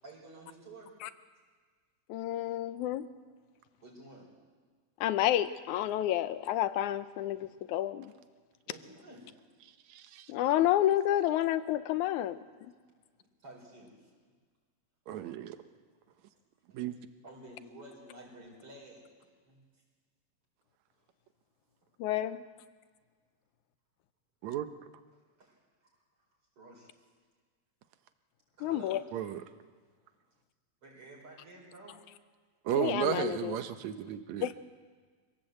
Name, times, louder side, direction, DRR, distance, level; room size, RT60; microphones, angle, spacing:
voice 1, 0.0-0.9 3.8-4.3 8.6-9.3 13.4-14.1 17.2-19.6 22.2-22.3 25.4-26.0 26.6-26.9 28.6-29.1 30.8-32.0, right 2 dB, 50° right, -2 dB, 5.7 m, -51 dB
voice 2, 2.1-3.0 5.0-8.1 10.3-12.4 22.0-22.4 28.6-29.0 32.7-33.6 34.4-34.5, left 13 dB, 90° left, 13 dB, 2.2 m, -29 dB
voice 3, 9.9-10.3 15.1-15.6 16.7-17.0 24.4-24.7 29.1-29.4 32.7-34.5, right 11 dB, 75° right, 9 dB, 2.3 m, -34 dB
25.0 x 17.0 x 7.9 m, 1.5 s
omnidirectional pair, 3.3 m